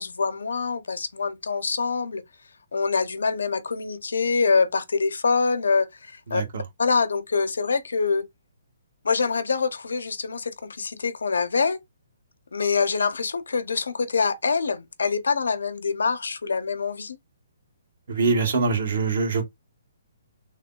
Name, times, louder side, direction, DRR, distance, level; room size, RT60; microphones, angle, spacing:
voice 1, 0.0-2.2 2.7-6.4 6.8-8.2 9.0-11.8 12.5-17.2, left 4 dB, 90° left, 0.5 m, -25 dB
voice 2, 6.3-6.6 18.1-19.4, right 4 dB, 60° right, 1.1 m, -23 dB
3.3 x 2.2 x 2.2 m
hypercardioid pair, 160°, 0 cm